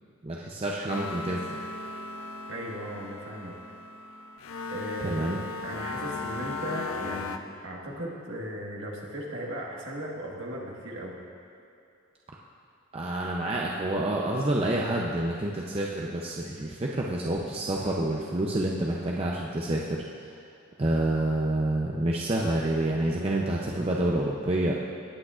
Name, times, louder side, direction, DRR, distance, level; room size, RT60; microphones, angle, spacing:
voice 1, 0.2-1.4 5.0-5.4 12.9-20.0 20.8-24.7, right 1 dB, 25° right, -2 dB, 0.6 m, -28 dB
sound 1, 0.9-7.4, left 3 dB, 75° left, 0.5 m, -37 dB
voice 2, 2.5-3.6 4.7-11.2, right 1 dB, 60° right, -3 dB, 1.6 m, -37 dB
17.5 x 8.6 x 2.5 m, 2.7 s
head